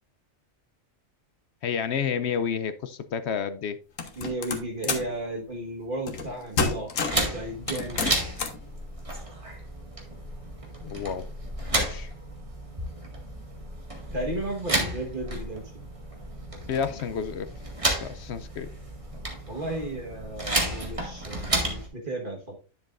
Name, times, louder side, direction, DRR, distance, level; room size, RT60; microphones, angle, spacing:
voice 1, 1.6-3.8 10.8-11.3 11.7-12.1 16.7-17.5 18.0-18.7, left 7 dB, 65° left, 0.8 m, -30 dB
sound 1, 4.0-5.1 6.1-6.3 6.6-7.3 7.7-8.6, left 4 dB, 85° left, 1.5 m, -29 dB
voice 2, 4.2-8.1 14.1-15.8 19.5-22.6, right 2 dB, 40° right, 1.6 m, -34 dB
sound 2, 7.1-21.9, right 1 dB, 25° right, 1.8 m, -32 dB
10.5 x 7.0 x 2.5 m
omnidirectional pair, 1.3 m